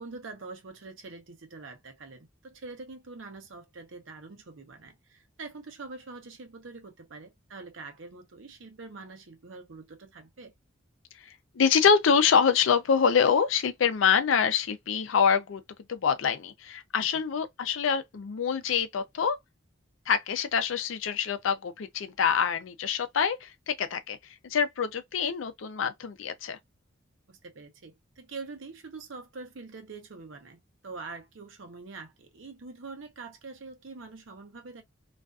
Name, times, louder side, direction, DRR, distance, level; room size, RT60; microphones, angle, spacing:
voice 1, 0.0-10.5 27.3-34.8, right 3 dB, 75° right, 0.7 m, -44 dB
voice 2, 11.3-15.6 15.9-19.4 20.1-24.2 24.4-26.6, left 6 dB, 80° left, 0.5 m, -25 dB
2.4 x 2.3 x 2.3 m
head